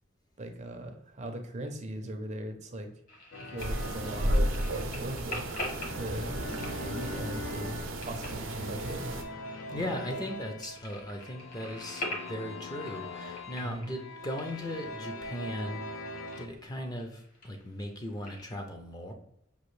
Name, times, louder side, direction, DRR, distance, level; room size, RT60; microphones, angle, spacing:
voice 1, 0.4-2.9 3.4-4.3 4.6-5.5 5.9-6.4 6.7-9.1 9.7-10.0 13.6-13.9, right 1 dB, 35° right, 5 dB, 0.5 m, -39 dB
sound 1, 3.1-18.5, left 1 dB, 45° left, 1.1 m, -45 dB
sound 2, 3.3-16.5, left 2 dB, 80° left, 0.6 m, -43 dB
sound 3, 3.6-9.2, right 1 dB, 80° right, 0.6 m, -33 dB
voice 2, 9.7-15.8 16.4-19.1, left 1 dB, 20° left, 3 dB, 0.5 m, -38 dB
5.2 x 2.6 x 3.1 m, 0.77 s
head